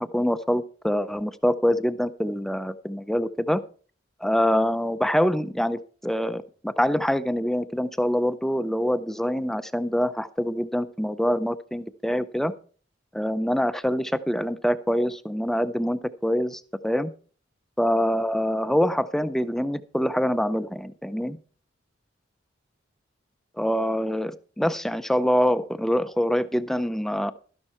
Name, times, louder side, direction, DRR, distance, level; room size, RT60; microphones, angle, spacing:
voice 1, 0.0-3.6 4.2-12.5 13.1-17.1 17.8-21.4 23.6-27.3, equal, ahead, 13 dB, 0.4 m, -25 dB
12.5 x 11.0 x 4.3 m, 0.40 s
head